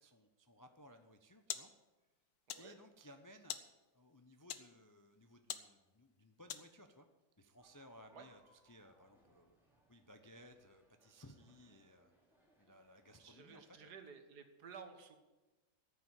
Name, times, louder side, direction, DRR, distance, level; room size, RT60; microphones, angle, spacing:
voice 1, 0.0-1.7 2.5-3.6 3.9-7.1 7.4-9.6 9.9-12.1 12.6-13.9, equal, 30° left, 7 dB, 0.3 m, -60 dB
sound 1, 0.9-7.0, left 9 dB, 80° left, 1.5 m, -50 dB
sound 2, 7.6-13.8, equal, ahead, 3.2 m, -73 dB
voice 2, 13.2-15.2, right 6 dB, 70° right, 7 dB, 1.9 m, -54 dB
13.5 x 6.9 x 9.1 m, 1.1 s
omnidirectional pair, 1.8 m